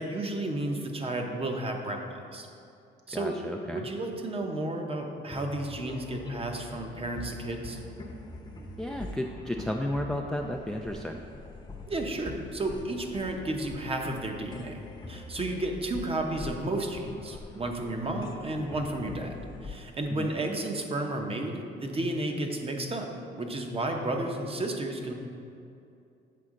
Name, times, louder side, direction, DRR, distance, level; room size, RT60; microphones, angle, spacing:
voice 1, 0.0-2.5 3.1-3.4 3.7-7.8 11.9-14.8 15.1-23.1 23.3-25.1, right 2 dB, 30° right, 3 dB, 0.8 m, -32 dB
voice 2, 3.1-3.9 8.8-11.2 20.1-20.3, left 1 dB, 5° left, 2 dB, 0.3 m, -33 dB
sound 1, 5.3-20.9, left 2 dB, 20° left, 0.8 m, -43 dB
7.6 x 4.2 x 3.7 m, 2.6 s
cardioid pair, 90°, 20 cm